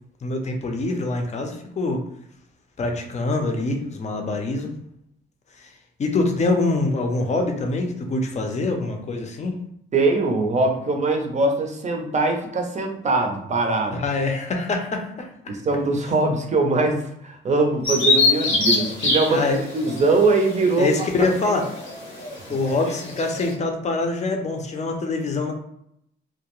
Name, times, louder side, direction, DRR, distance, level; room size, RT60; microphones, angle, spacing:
voice 1, 0.2-2.0 2.8-4.7 5.6-5.7 6.0-9.6 13.9-15.3 19.3-19.6 20.8-21.7 22.5-25.5, left 3 dB, 35° left, 3 dB, 0.6 m, -24 dB
voice 2, 9.9-14.0 15.5-20.9, right 3 dB, 35° right, 4 dB, 0.6 m, -22 dB
Bird vocalization bird call bird song, 17.8-23.5, left 2 dB, 85° left, 0.8 m, -25 dB
2.3 x 2.1 x 3.0 m, 0.74 s
cardioid pair, 90°, 20 cm